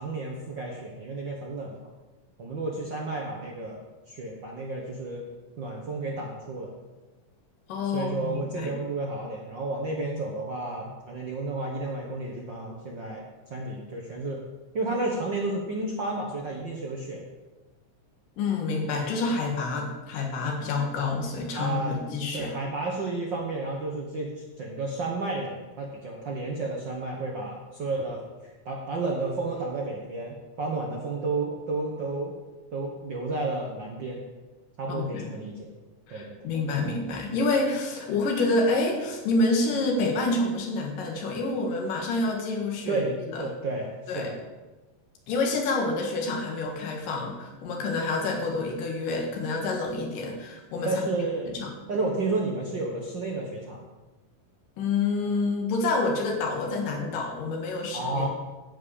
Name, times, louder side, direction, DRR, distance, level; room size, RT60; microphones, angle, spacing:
voice 1, 0.0-1.8 2.4-3.8 4.1-5.2 5.6-6.7 7.9-14.4 14.7-17.2 21.5-22.0 22.3-28.2 28.6-32.3 32.7-34.2 34.8-35.7 36.1-36.4 42.9-44.4 50.8-51.6 51.9-53.8 57.9-58.3, right 2 dB, 75° right, -1 dB, 1.0 m, -31 dB
voice 2, 7.7-8.7 18.4-22.5 34.9-35.3 36.1-43.0 43.3-43.4 44.1-44.3 45.3-50.9 51.5-51.7 54.8-58.3, left 3 dB, 75° left, 0 dB, 3.3 m, -28 dB
11.0 x 5.3 x 8.5 m, 1.2 s
omnidirectional pair, 3.9 m